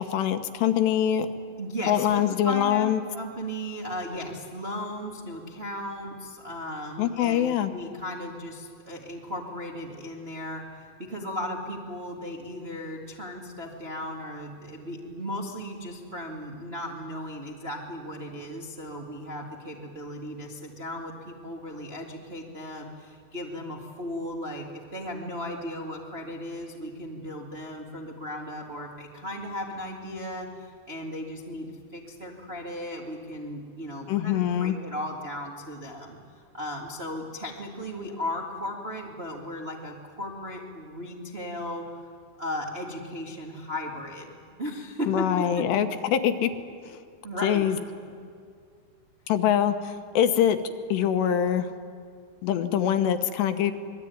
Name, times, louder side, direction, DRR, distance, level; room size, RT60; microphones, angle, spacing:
voice 1, 0.1-1.3 1.9-3.0 7.0-7.7 34.1-34.8 45.1-46.5 46.8-47.0 47.4-47.8 49.3-50.6 50.9-51.7 52.4-53.7, left 10 dB, 75° left, 8 dB, 3.1 m, -24 dB
voice 2, 1.6-24.6 24.9-42.1 42.4-44.3 44.6-45.2 45.5-45.6 47.2-47.6 48.0-48.1, left 1 dB, 40° right, -1 dB, 0.8 m, -36 dB
25.5 x 21.0 x 9.4 m, 2.2 s
omnidirectional pair, 5.2 m